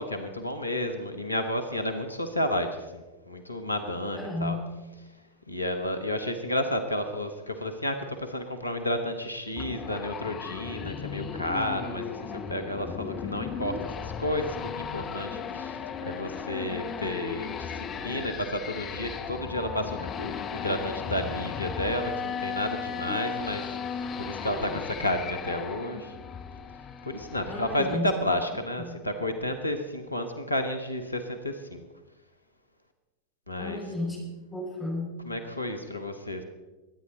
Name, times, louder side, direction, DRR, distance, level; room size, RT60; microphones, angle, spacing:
voice 1, 0.0-4.6 5.5-26.1 27.0-31.8 33.5-33.8 35.2-36.4, left 1 dB, 85° left, 7 dB, 1.1 m, -31 dB
voice 2, 4.1-4.7 27.5-28.1 28.9-29.0 33.6-35.2, left 2 dB, ahead, -4 dB, 5.5 m, -33 dB
sound 1, 9.6-27.9, left 7 dB, 30° left, 1.0 m, -36 dB
22.5 x 9.6 x 4.0 m, 1.1 s
figure-of-eight pair, 90°, 0 cm